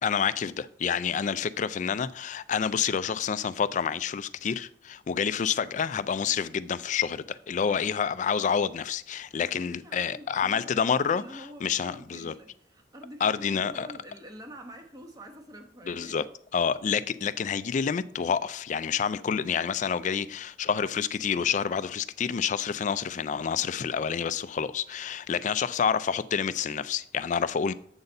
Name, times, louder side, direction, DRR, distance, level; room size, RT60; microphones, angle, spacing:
voice 1, 0.0-12.3 13.2-13.9 15.9-16.2 16.5-27.7, left 7 dB, 45° left, 0.3 m, -28 dB
voice 2, 9.4-16.3 20.0-20.3, equal, 20° right, 0.9 m, -47 dB
7.9 x 4.0 x 5.3 m
head